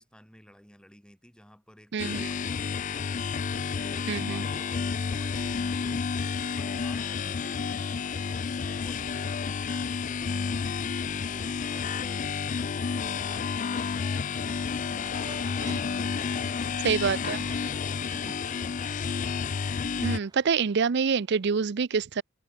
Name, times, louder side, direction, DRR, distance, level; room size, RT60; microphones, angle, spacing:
voice 1, 0.0-3.1 3.6-6.0 6.6-12.3 12.8-18.1, equal, 5° left, 6.4 m, -53 dB
voice 2, 1.9-2.3 4.1-4.4 16.8-17.4 20.0-22.2, right 6 dB, 55° right, 0.5 m, -26 dB
sound 1, 2.0-20.2, left 6 dB, 40° left, 0.4 m, -30 dB
sound 2, 10.7-21.4, right 2 dB, 20° right, 1.5 m, -51 dB
head